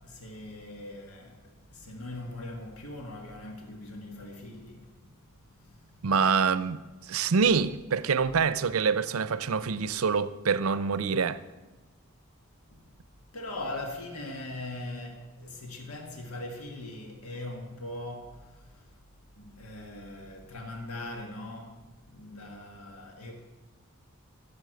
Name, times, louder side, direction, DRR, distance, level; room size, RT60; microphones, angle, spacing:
voice 1, 0.0-6.1 12.7-12.8 13.3-18.9 19.4-23.4, left 2 dB, 85° left, 1.6 m, -41 dB
voice 2, 6.0-6.8 7.1-11.4, right 5 dB, 70° right, 0.6 m, -26 dB
15.5 x 7.3 x 7.7 m
head